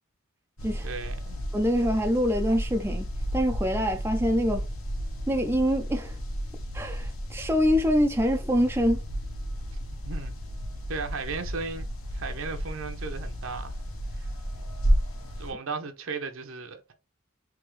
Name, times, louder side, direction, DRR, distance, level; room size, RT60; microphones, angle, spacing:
sound 1, 0.6-15.5, equal, 90° left, 1.4 m, -32 dB
voice 1, 0.8-1.4 10.0-10.3 10.9-13.7 14.2-14.3 15.4-16.9, right 4 dB, 75° right, 0.8 m, -36 dB
voice 2, 1.5-4.7 5.3-6.2 6.7-9.0, equal, 10° right, 0.4 m, -25 dB
3.6 x 3.4 x 3.1 m
head